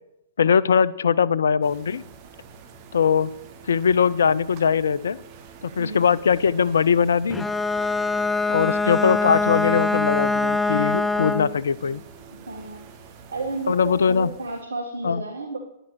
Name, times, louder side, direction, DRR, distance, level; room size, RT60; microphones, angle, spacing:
voice 1, 0.4-2.0 2.9-3.3 3.7-5.2 5.6-7.5 8.5-12.0 13.7-14.3 15.0-15.2, left 6 dB, 75° left, 18 dB, 0.5 m, -21 dB
sound 1, 1.6-14.6, right 6 dB, 40° right, 1.6 m, -46 dB
Bowed string instrument, 7.3-11.6, left 3 dB, 5° left, 0.4 m, -23 dB
voice 2, 12.3-12.8 13.3-15.6, right 2 dB, 85° right, 3 dB, 1.7 m, -32 dB
10.0 x 9.9 x 6.8 m, 0.86 s
hypercardioid pair, 120°, 0 cm